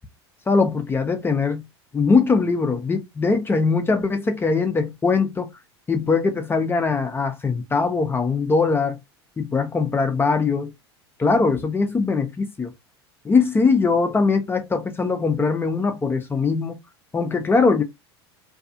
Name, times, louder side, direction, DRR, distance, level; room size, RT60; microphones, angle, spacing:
voice 1, 0.5-1.7 1.9-5.5 5.9-9.0 9.4-10.7 11.2-12.7 13.2-16.8 17.1-17.8, left 4 dB, 15° left, 0.5 m, -21 dB
2.6 x 2.3 x 2.6 m
figure-of-eight pair, 75°, 14 cm